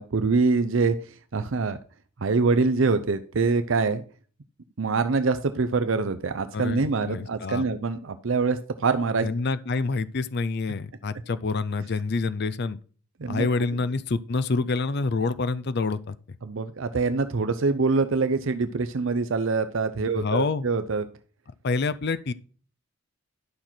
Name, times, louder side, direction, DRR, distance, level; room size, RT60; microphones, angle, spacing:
voice 1, 0.0-1.8 2.2-4.0 4.8-9.3 13.2-13.5 16.4-21.0, right 4 dB, 70° right, 0.6 m, -24 dB
voice 2, 6.5-7.7 9.2-12.8 13.3-16.2 20.1-20.7 21.6-22.3, left 3 dB, 55° left, 0.5 m, -27 dB
11.5 x 5.8 x 4.4 m
head